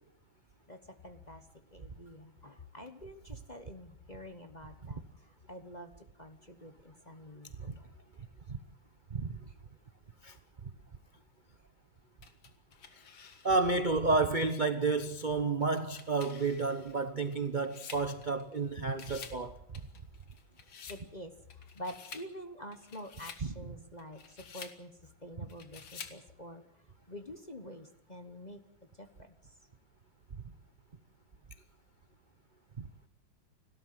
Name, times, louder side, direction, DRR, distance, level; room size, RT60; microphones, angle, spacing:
voice 1, 0.7-7.9 9.5-9.6 20.5-20.6 20.9-28.6 28.9-29.5, equal, 25° left, 1.0 m, -48 dB
voice 2, 9.1-9.5 10.2-10.4 13.4-19.6 23.4-23.5 32.8-32.9, right 3 dB, 40° right, 0.7 m, -31 dB
sound 1, 12.2-13.8 14.3-14.4 15.6-18.6 18.9-19.4 19.7-21.0 21.5-22.3 22.7-23.5 24.0-24.8 25.5-26.2, left 6 dB, 75° left, 2.6 m, -50 dB
30.0 x 13.0 x 7.6 m
omnidirectional pair, 2.2 m